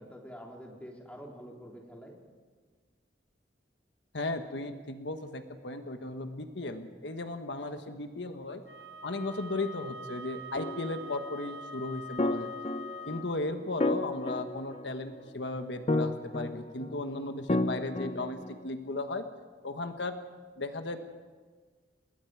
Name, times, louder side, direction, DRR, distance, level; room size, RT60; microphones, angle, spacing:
voice 1, 0.0-2.2, equal, 10° left, -1 dB, 3.3 m, -46 dB
voice 2, 4.1-8.6 9.0-12.5 13.1-19.3 19.6-20.2 20.6-21.0, left 2 dB, 80° left, 7 dB, 1.3 m, -36 dB
Wind instrument woodwind instrument, 8.6-13.4, left 1 dB, 60° right, 1.7 m, -44 dB
sound 1, 10.5-11.1 12.2-13.2 13.8-15.2 15.9-16.9 17.5-18.6, left 2 dB, 35° left, 0.6 m, -32 dB
29.0 x 20.0 x 4.8 m, 1.5 s
head